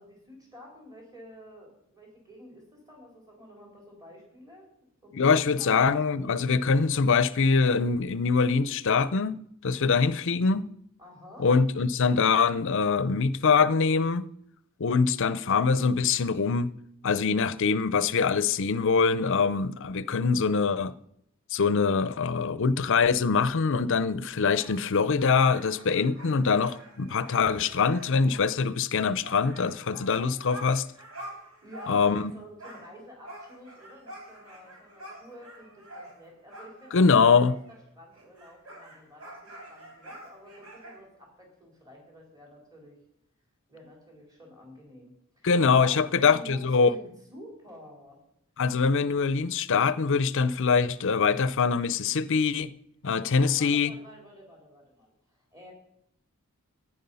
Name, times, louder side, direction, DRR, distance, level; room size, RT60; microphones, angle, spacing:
voice 1, 0.0-4.7 5.0-5.9 11.0-11.5 31.6-43.0 43.7-48.2 53.2-55.7, equal, 15° right, 4.1 m, -49 dB
voice 2, 5.1-10.7 11.4-14.2 14.8-16.7 17.0-20.9 21.5-30.8 31.9-32.3 36.9-37.5 45.4-46.9 48.6-52.7 53.0-53.9, left 5 dB, 60° left, 0.6 m, -23 dB
sound 1, 24.4-32.3 32.6-37.8 38.1-40.9, right 1 dB, 80° right, 4.5 m, -47 dB
14.5 x 10.0 x 5.6 m
head